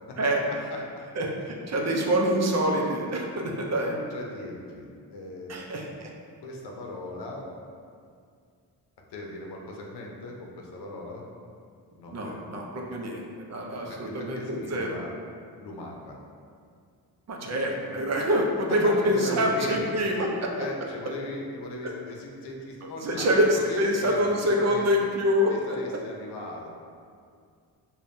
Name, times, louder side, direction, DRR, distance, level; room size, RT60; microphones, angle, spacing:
voice 1, 1.2-3.9 5.5-6.1 12.1-15.0 17.3-20.5 23.0-25.8, equal, 40° right, 0 dB, 0.6 m, -26 dB
voice 2, 3.9-5.5 6.4-7.5 9.1-11.2 12.0-12.5 13.7-15.1 15.6-16.2 19.1-20.1 20.6-24.9 25.5-26.7, left 2 dB, 85° left, -1 dB, 0.7 m, -39 dB
5.0 x 2.3 x 2.6 m, 2.2 s
cardioid pair, 80°, 40 cm